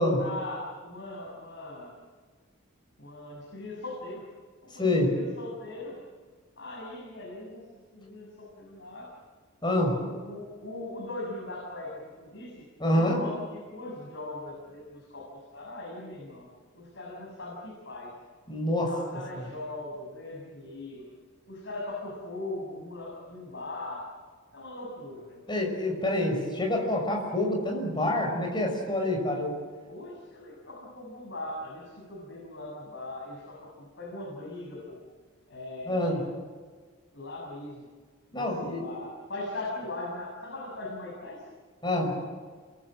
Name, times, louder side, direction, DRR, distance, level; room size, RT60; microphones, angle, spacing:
voice 1, 0.0-1.9 3.0-4.3 4.6-6.0 6.6-9.2 10.0-16.5 16.7-18.1 18.9-21.1 21.5-24.0 24.5-25.4 29.0-29.2 29.8-35.0 35.5-36.2 37.1-37.9 38.3-41.5, left 2 dB, 60° left, -3 dB, 7.0 m, -40 dB
voice 2, 4.8-5.1 9.6-10.0 12.8-13.2 18.5-18.9 19.4-19.5 25.5-29.5 35.9-36.2 38.3-38.8 41.8-42.2, left 1 dB, 20° left, 1 dB, 6.1 m, -26 dB
29.0 x 23.0 x 7.7 m, 1.5 s
head